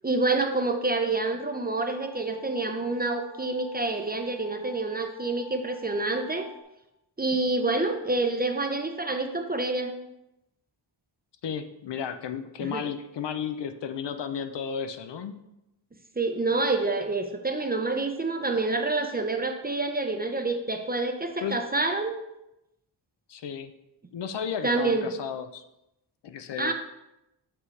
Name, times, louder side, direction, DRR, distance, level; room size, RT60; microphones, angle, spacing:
voice 1, 0.0-6.5 7.2-9.9 12.6-12.8 16.2-22.1 24.6-25.1 26.6-26.7, right 3 dB, 20° right, 5 dB, 0.6 m, -27 dB
sound 1, 1.6-6.6, left 6 dB, ahead, 1.0 m, -50 dB
voice 2, 11.4-15.4 21.4-21.6 23.3-23.7 24.1-25.6 26.2-26.7, left 7 dB, 65° left, 9 dB, 0.6 m, -33 dB
6.2 x 6.0 x 3.2 m, 0.89 s
wide cardioid pair, 110°, 46 cm